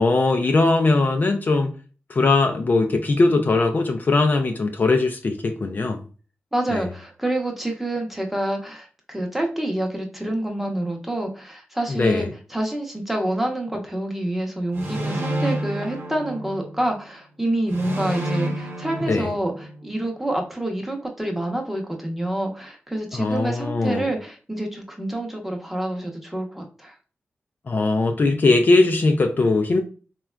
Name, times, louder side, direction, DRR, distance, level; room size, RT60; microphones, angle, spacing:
voice 1, 0.0-1.7 2.1-6.0 6.7-6.8 11.9-12.3 19.1-19.3 23.1-24.1 27.7-29.8, left 3 dB, 45° left, 0.4 m, -20 dB
voice 2, 6.5-26.9, right 1 dB, 5° right, 0.8 m, -27 dB
sound 1, 14.7-16.9 17.7-19.9, right 1 dB, 60° right, 0.7 m, -29 dB
3.4 x 2.2 x 2.2 m
cardioid pair, 60°, 4 cm